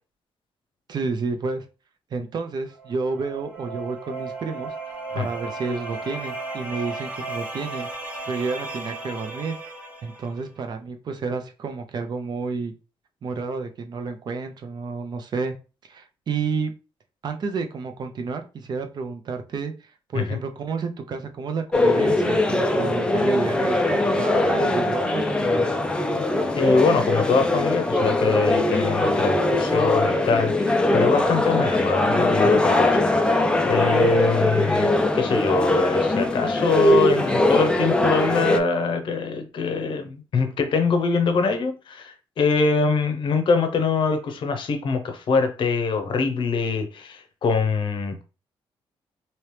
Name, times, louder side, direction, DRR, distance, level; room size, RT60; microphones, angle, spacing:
voice 1, 0.9-1.6 2.1-4.7 5.1-7.9 8.3-9.6 10.0-12.7 13.2-15.5 15.9-16.7 17.2-19.7 20.1-25.8, right 4 dB, 45° right, 0.6 m, -30 dB
sound 1, 2.7-10.4, right 3 dB, 15° right, 1.0 m, -35 dB
sound 2, 21.7-38.6, left 2 dB, 10° left, 0.3 m, -21 dB
voice 2, 26.6-33.2 33.7-48.2, left 4 dB, 55° left, 0.7 m, -23 dB
3.0 x 2.9 x 3.2 m
wide cardioid pair, 150°, 10 cm